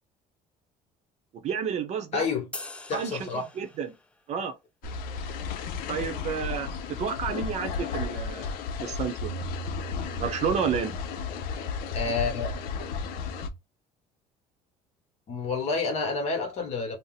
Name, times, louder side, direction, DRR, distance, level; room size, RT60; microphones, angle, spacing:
voice 1, 1.4-2.2 2.9-3.9 4.3-4.5 5.9-9.3 10.2-10.9, right 7 dB, 50° right, 0.7 m, -31 dB
voice 2, 2.1-2.5 2.9-3.4 11.9-12.5 15.3-17.0, left 4 dB, 45° left, 1.0 m, -29 dB
sound 1, 2.5-4.1, left 2 dB, 10° left, 0.3 m, -42 dB
sound 2, 4.8-13.5, left 6 dB, 75° left, 0.5 m, -34 dB
sound 3, 4.8-13.6, right 3 dB, 20° right, 0.9 m, -42 dB
2.7 x 2.0 x 4.0 m
cardioid pair, 135°, 15 cm